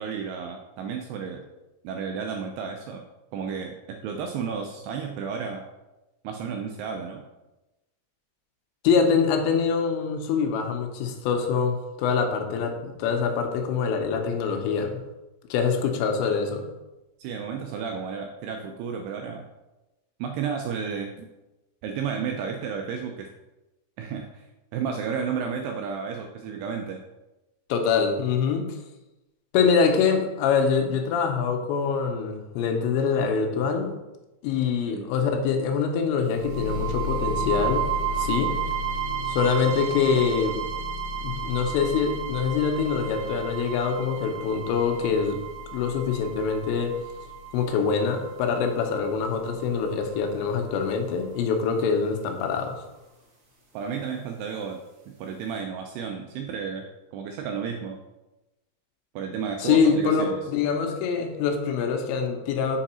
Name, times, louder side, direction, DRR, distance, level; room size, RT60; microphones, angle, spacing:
voice 1, 0.0-1.4 1.8-3.0 3.3-5.6 6.2-7.2 17.2-19.5 20.2-21.3 21.8-23.3 24.0-24.4 24.7-27.0 34.9-35.1 53.7-54.8 55.2-58.0 59.2-60.4, right 6 dB, 85° right, 3 dB, 2.3 m, -32 dB
voice 2, 8.8-15.0 15.5-16.7 27.7-28.8 29.5-33.9 34.4-38.6 39.3-40.6 41.2-45.4 45.7-47.0 47.5-52.9 59.6-62.8, left 6 dB, 85° left, 4 dB, 3.0 m, -24 dB
sound 1, 36.3-50.3, right 4 dB, 60° right, 1.8 m, -32 dB
6.7 x 4.6 x 4.3 m, 1.0 s
omnidirectional pair, 5.2 m